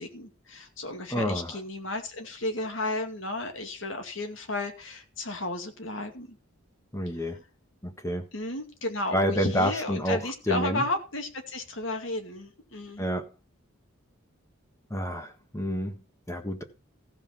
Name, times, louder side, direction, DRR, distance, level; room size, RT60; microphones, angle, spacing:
voice 1, 0.0-6.4 8.3-13.0, left 2 dB, 65° left, 2.4 m, -33 dB
voice 2, 1.1-1.6 6.9-7.4 7.8-8.3 9.1-10.8 13.0-13.3 14.9-16.6, equal, 15° left, 1.5 m, -29 dB
15.0 x 5.6 x 5.9 m
head